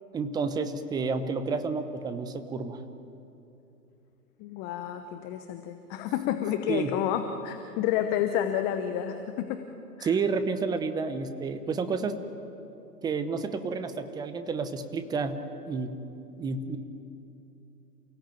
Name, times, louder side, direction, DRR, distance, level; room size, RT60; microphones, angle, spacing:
voice 1, 0.1-2.8 6.7-6.9 10.0-12.2 13.0-15.4 15.7-16.0 16.4-16.8, right 4 dB, 10° right, 10 dB, 0.8 m, -30 dB
voice 2, 4.4-9.6 10.0-10.1, left 10 dB, 20° left, 7 dB, 0.8 m, -30 dB
28.5 x 17.0 x 9.1 m, 2.8 s
hypercardioid pair, 125°, 48 cm